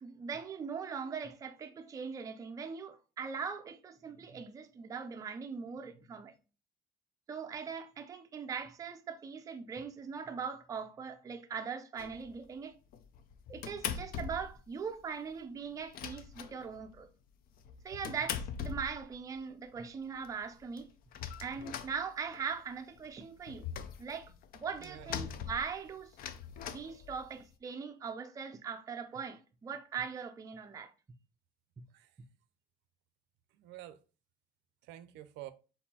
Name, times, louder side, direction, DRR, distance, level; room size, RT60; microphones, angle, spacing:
voice 1, 0.0-6.3 7.3-12.8 13.5-17.1 17.8-20.9 21.4-23.6 24.0-26.1 26.7-30.9, right 6 dB, 20° right, 0.4 m, -41 dB
sound 1, 12.0-12.4 12.9-14.7 14.9-15.0 15.3-15.4 15.7-17.0 17.5-19.4 19.9-20.0 20.2-20.3 20.5-22.6 23.0-27.5, left 8 dB, 55° left, 0.5 m, -42 dB
voice 2, 24.8-25.4 31.9-32.2 33.5-34.0 34.8-35.5, right 14 dB, 80° right, 0.5 m, -49 dB
4.2 x 3.9 x 2.8 m
cardioid pair, 155°, 18 cm